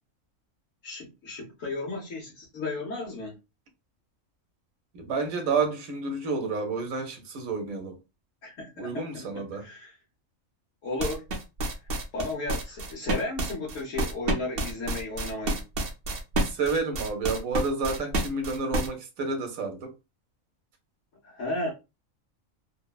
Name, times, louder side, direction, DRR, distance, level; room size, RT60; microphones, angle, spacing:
voice 1, 0.8-3.4 8.4-9.3 9.6-10.0 10.8-11.2 12.1-15.6 21.2-21.7, left 2 dB, 70° left, 1.2 m, -34 dB
voice 2, 4.9-8.0 8.8-9.7 16.5-19.9, right 4 dB, 85° right, 1.1 m, -30 dB
sound 1, 11.0-18.9, right 1 dB, 55° right, 0.7 m, -29 dB
3.1 x 2.0 x 2.3 m
omnidirectional pair, 1.4 m